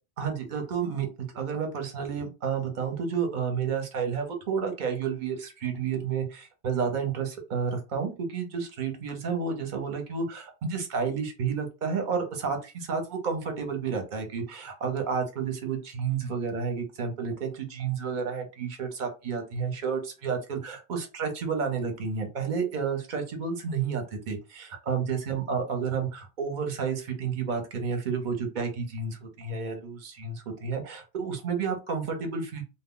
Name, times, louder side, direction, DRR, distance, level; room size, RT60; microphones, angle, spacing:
voice 1, 0.2-32.6, right 6 dB, 50° right, 4 dB, 0.7 m, -31 dB
2.1 x 2.1 x 3.6 m, 0.30 s
omnidirectional pair, 1.2 m